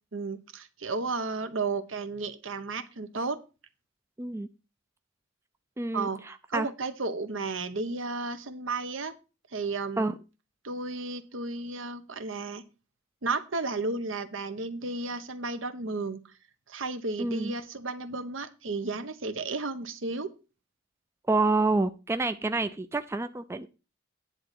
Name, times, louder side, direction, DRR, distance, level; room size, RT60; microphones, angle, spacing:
voice 1, 0.1-3.4 5.9-9.1 9.5-10.1 10.6-12.6 13.2-16.2 16.7-20.3, right 3 dB, 70° right, 10 dB, 1.0 m, -33 dB
voice 2, 4.2-4.5 5.8-6.7 10.0-10.1 17.2-17.5 21.3-23.7, right 3 dB, 15° right, 9 dB, 0.4 m, -28 dB
9.8 x 3.9 x 7.3 m, 0.32 s
head